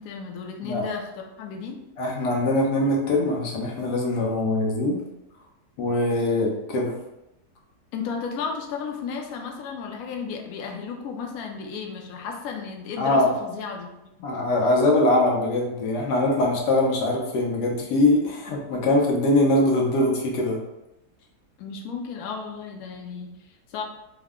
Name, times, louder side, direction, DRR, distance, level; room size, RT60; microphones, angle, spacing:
voice 1, 0.0-1.8 7.9-13.9 14.2-14.3 21.6-23.8, left 5 dB, 70° left, 2 dB, 1.0 m, -34 dB
voice 2, 2.0-5.0 5.8-6.9 13.0-13.3 14.2-20.6, left 1 dB, 90° left, -1 dB, 1.4 m, -22 dB
4.6 x 2.1 x 3.5 m, 0.91 s
omnidirectional pair, 1.7 m